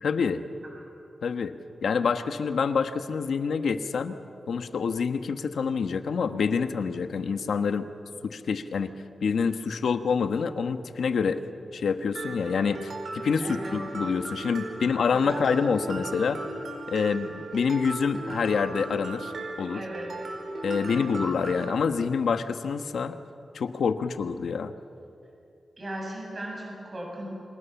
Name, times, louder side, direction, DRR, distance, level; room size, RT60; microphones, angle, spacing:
voice 1, 0.0-0.4 1.2-4.2 4.5-7.9 8.2-8.9 9.2-11.4 11.7-16.4 16.9-19.3 19.6-19.8 20.6-23.2 23.5-24.7, left 5 dB, 90° left, 8 dB, 1.3 m, -27 dB
Mallet percussion, 12.1-21.7, right 2 dB, 60° right, 5.1 m, -37 dB
voice 2, 13.4-13.8 15.1-15.4 19.6-20.4 20.8-21.1 25.8-27.3, right 1 dB, 30° right, -1 dB, 7.4 m, -38 dB
29.5 x 25.5 x 7.2 m, 2.7 s
wide cardioid pair, 170°, 0 cm